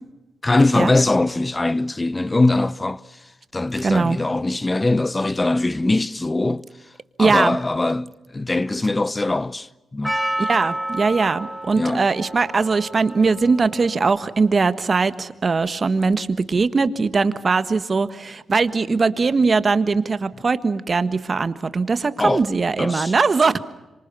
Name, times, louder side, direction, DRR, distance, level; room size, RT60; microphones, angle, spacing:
voice 1, 0.4-6.7 7.2-10.2 11.8-12.1 22.2-22.5 22.8-23.1, left 2 dB, 25° left, 0.8 m, -22 dB
voice 2, 3.8-4.2 7.2-7.6 10.4-23.5, right 4 dB, 45° right, 1.5 m, -20 dB
Percussion, 10.0-15.3, right 1 dB, ahead, 5.1 m, -31 dB
26.5 x 25.0 x 7.0 m
supercardioid pair, 50°, 0 cm